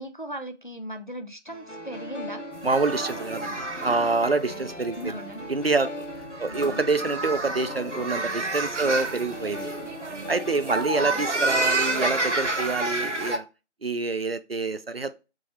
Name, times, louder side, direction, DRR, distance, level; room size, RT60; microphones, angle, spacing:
voice 1, 0.0-2.4 5.0-5.5 6.5-6.8 8.7-8.9 11.0-11.2, equal, 45° left, 0.4 m, -38 dB
sound 1, 1.5-12.6, left 1 dB, 80° left, 1.8 m, -39 dB
sound 2, 2.5-13.4, right 2 dB, 80° right, 0.9 m, -30 dB
voice 2, 2.6-5.2 5.5-6.1 6.4-9.7 10.3-13.5 13.8-15.1, right 3 dB, 55° right, 0.5 m, -27 dB
3.6 x 3.0 x 4.1 m
figure-of-eight pair, 175°, 36 cm